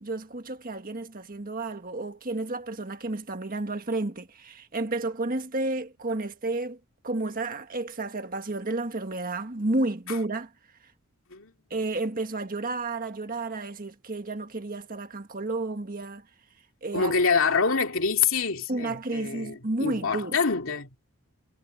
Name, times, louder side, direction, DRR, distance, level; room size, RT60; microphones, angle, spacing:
voice 1, 0.0-6.8 7.0-10.5 11.7-16.2 16.8-17.1 18.7-20.4, right 2 dB, 40° right, 1.6 m, -31 dB
voice 2, 16.9-20.9, left 5 dB, 60° left, 2.8 m, -26 dB
head